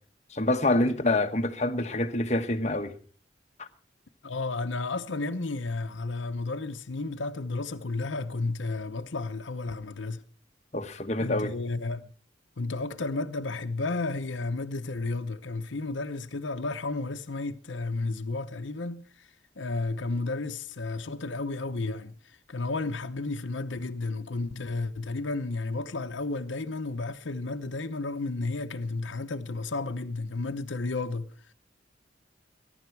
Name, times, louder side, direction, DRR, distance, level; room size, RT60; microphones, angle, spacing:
voice 1, 0.3-2.9 3.6-3.7 10.7-11.5, left 2 dB, 35° left, 1.2 m, -26 dB
voice 2, 4.2-10.2 11.2-12.1 12.6-19.3 19.6-31.5, left 3 dB, 90° left, 0.9 m, -32 dB
21.5 x 11.0 x 4.6 m
head